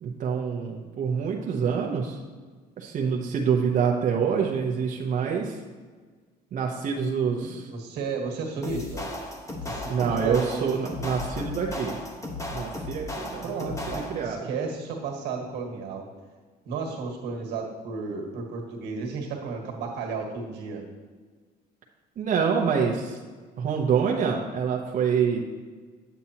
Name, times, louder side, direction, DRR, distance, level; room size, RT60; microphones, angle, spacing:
voice 1, 0.0-2.2 2.8-5.6 6.5-7.7 9.9-12.0 12.5-13.5 13.9-14.4 22.2-23.2 23.6-25.5, right 6 dB, 50° right, -1 dB, 0.8 m, -26 dB
voice 2, 7.2-9.1 9.6-10.8 13.4-16.1 16.6-20.8, right 4 dB, 80° right, 1 dB, 1.6 m, -33 dB
sound 1, 8.6-14.3, left 2 dB, 20° left, 1.1 m, -35 dB
8.3 x 8.1 x 2.9 m, 1.4 s
cardioid pair, 110°, 17 cm